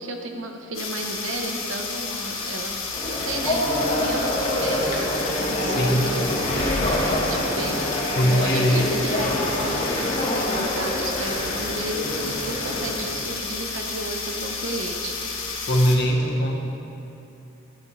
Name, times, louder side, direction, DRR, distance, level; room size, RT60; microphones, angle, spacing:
voice 1, 0.0-2.8 3.0-15.2, right 2 dB, 70° right, 3 dB, 1.0 m, -33 dB
sound 1, 0.7-16.0, left 4 dB, 85° left, 1.5 m, -31 dB
sound 2, 2.9-13.1, left 1 dB, 30° left, 1.4 m, -26 dB
voice 2, 5.6-6.1 8.1-8.9 15.7-16.6, equal, 55° left, 1 dB, 1.0 m, -21 dB
13.0 x 9.5 x 3.2 m, 2.9 s
head